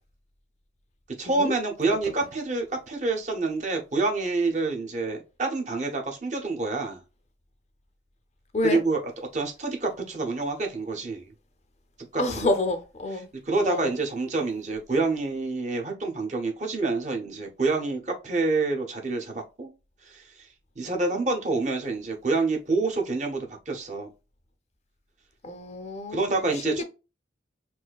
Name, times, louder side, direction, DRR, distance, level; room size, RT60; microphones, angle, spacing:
voice 1, 1.2-7.0 8.6-9.0 9.3-11.3 12.1-12.6 13.4-19.7 20.0-20.5 20.8-24.1 26.1-26.8, right 3 dB, 40° right, 0.9 m, -27 dB
voice 2, 12.2-13.3 13.6-13.9 25.4-26.8, left 2 dB, 35° left, 0.6 m, -28 dB
4.2 x 2.7 x 2.3 m
head